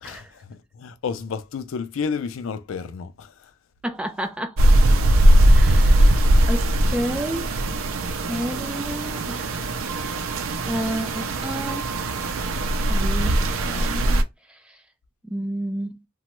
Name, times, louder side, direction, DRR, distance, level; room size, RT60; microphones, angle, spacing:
voice 1, 0.0-3.5, left 5 dB, 70° left, 0.4 m, -31 dB
voice 2, 3.8-4.6 5.5-6.2 6.5-6.7 6.9-7.5 8.3-9.4 10.6-11.9 12.6-14.2 15.2-15.9, equal, 5° right, 0.3 m, -30 dB
sound 1, 4.6-14.2, right 1 dB, 80° right, 0.5 m, -20 dB
2.9 x 2.3 x 3.0 m
head